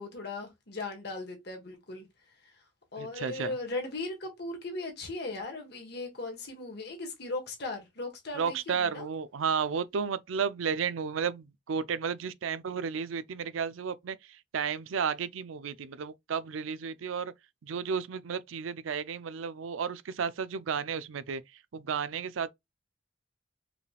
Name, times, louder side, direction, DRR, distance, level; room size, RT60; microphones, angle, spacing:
voice 1, 0.0-2.1 2.9-9.1, left 2 dB, 55° left, 1.4 m, -38 dB
voice 2, 3.0-3.6 8.4-17.3 17.6-21.4 21.7-22.5, right 6 dB, 85° right, 0.5 m, -33 dB
4.9 x 3.3 x 2.3 m
head